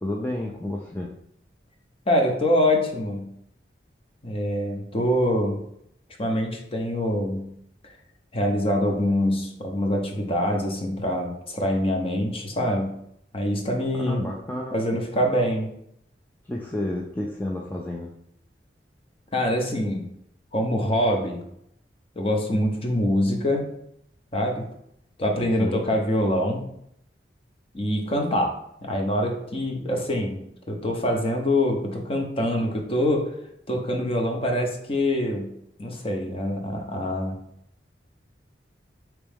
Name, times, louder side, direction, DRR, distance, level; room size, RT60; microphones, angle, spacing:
voice 1, 0.0-1.1 14.0-15.0 16.5-18.1 25.6-25.9, left 1 dB, 10° left, -2 dB, 0.4 m, -31 dB
voice 2, 2.1-3.3 4.2-5.6 6.2-7.5 8.3-12.9 13.3-14.3 14.7-15.7 19.3-20.0 20.5-21.4 22.1-23.7 24.3-24.6 25.2-26.6 27.7-30.4 30.7-33.3 33.7-35.5 35.8-37.3, left 1 dB, 30° left, 2 dB, 0.7 m, -24 dB
4.5 x 3.0 x 3.5 m, 0.73 s
head